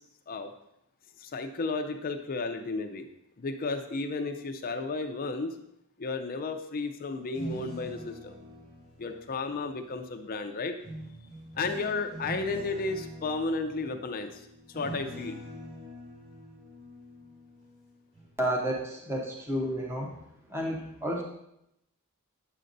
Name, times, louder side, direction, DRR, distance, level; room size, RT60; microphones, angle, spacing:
voice 1, 1.2-3.1 3.4-5.6 6.0-8.3 9.0-10.8 11.5-15.4, left 3 dB, 40° left, 6 dB, 0.5 m, -33 dB
sound 1, 7.2-10.0 10.8-17.8 18.1-18.4, equal, 30° right, 3.3 m, -44 dB
voice 2, 18.4-20.1 20.5-21.2, equal, 10° right, -1 dB, 0.9 m, -31 dB
9.1 x 7.7 x 2.6 m, 0.80 s
head